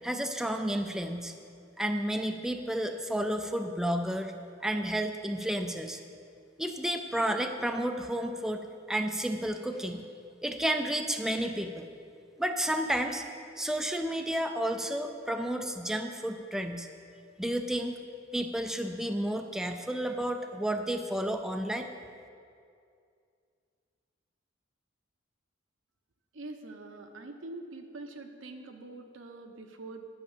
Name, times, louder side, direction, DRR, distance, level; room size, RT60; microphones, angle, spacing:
voice 1, 0.0-1.3 1.8-4.3 4.6-6.0 6.6-10.1 10.4-11.9 12.4-13.3 13.6-16.9 17.4-18.0 18.3-21.9, right 1 dB, 5° right, 5 dB, 0.4 m, -31 dB
voice 2, 26.3-30.1, right 2 dB, 80° right, 4 dB, 0.9 m, -44 dB
11.0 x 5.7 x 7.2 m, 2.4 s
head